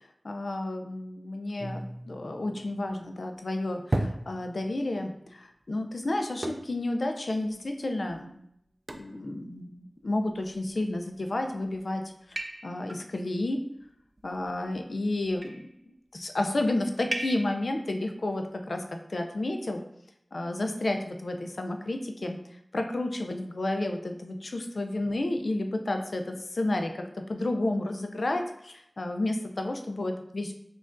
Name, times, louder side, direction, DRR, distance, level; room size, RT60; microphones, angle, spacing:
voice 1, 0.2-8.4 9.0-12.0 12.3-13.6 14.2-18.8 19.1-19.8 20.3-22.4 22.7-27.0 27.3-30.5, left 2 dB, 75° left, 4 dB, 0.4 m, -31 dB
sound 1, 1.6-3.0 3.9-4.9 6.4-6.9 7.5-7.6 8.1-8.2 8.9-9.2 10.3-10.8 11.5-11.8 12.4-13.0 14.2-14.8 15.2-15.7 17.1-17.7, right 1 dB, 45° right, 0.3 m, -35 dB
5.0 x 2.3 x 2.5 m, 0.74 s
wide cardioid pair, 50°, 0 cm